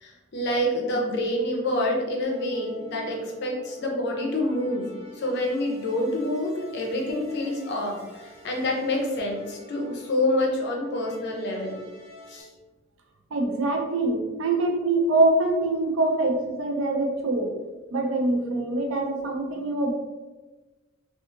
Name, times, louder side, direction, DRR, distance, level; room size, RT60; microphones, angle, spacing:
voice 1, 0.0-4.9 5.2-11.8 12.3-12.5, left 1 dB, 60° left, 0 dB, 0.6 m, -27 dB
sound 1, 2.2-12.4, equal, 25° right, 1.4 m, -46 dB
voice 2, 13.3-17.5 17.9-19.9, right 2 dB, 85° right, 2 dB, 0.5 m, -24 dB
2.6 x 2.4 x 2.4 m, 1.2 s
head